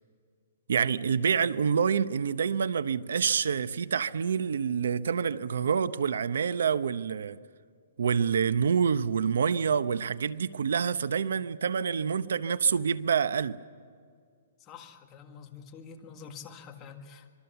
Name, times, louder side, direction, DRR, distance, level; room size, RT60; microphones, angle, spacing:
voice 1, 0.7-7.4 8.0-13.6, right 6 dB, 80° right, 0.8 m, -27 dB
voice 2, 14.6-17.3, left 6 dB, 20° left, 1.8 m, -47 dB
26.0 x 23.0 x 6.9 m
hypercardioid pair, 165°, 0 cm